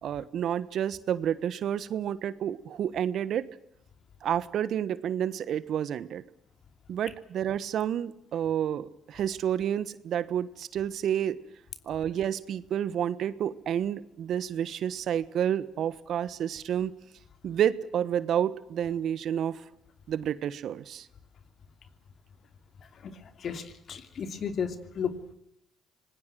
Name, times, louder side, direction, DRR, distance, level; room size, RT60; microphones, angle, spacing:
voice 1, 0.0-3.4 4.2-6.2 6.9-11.4 11.9-16.9 17.4-19.6 20.1-21.1, right 9 dB, 65° right, 17 dB, 1.2 m, -30 dB
voice 2, 23.4-25.1, left 7 dB, 55° left, 9 dB, 2.8 m, -33 dB
26.0 x 20.0 x 7.7 m, 0.77 s
hypercardioid pair, 55°, 0 cm